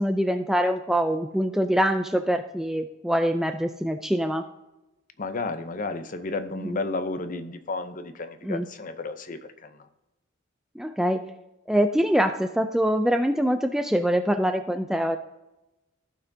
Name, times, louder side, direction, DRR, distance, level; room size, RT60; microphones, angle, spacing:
voice 1, 0.0-4.4 6.6-6.8 8.4-8.7 10.8-11.3 11.7-15.2, equal, ahead, 7 dB, 0.3 m, -24 dB
voice 2, 5.2-9.9, left 3 dB, 40° left, 10 dB, 0.7 m, -32 dB
15.5 x 5.8 x 2.7 m, 0.99 s
head